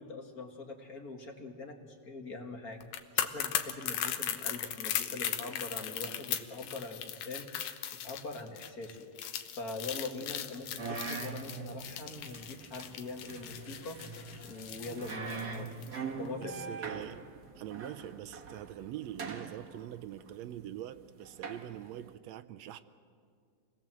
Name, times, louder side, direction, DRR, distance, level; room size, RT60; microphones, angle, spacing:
voice 1, 0.0-2.9 3.1-7.5 8.0-9.0 9.5-14.0 14.4-15.7 16.2-16.5, left 3 dB, 35° left, 1.8 m, -43 dB
sound 1, 2.8-16.0 16.3-16.4, left 10 dB, 90° left, 2.6 m, -38 dB
sound 2, 10.8-22.1, right 5 dB, 40° right, 1.6 m, -43 dB
voice 2, 16.4-17.2 17.5-22.8, right 12 dB, 75° right, 1.8 m, -43 dB
28.0 x 19.0 x 7.6 m
omnidirectional pair, 3.5 m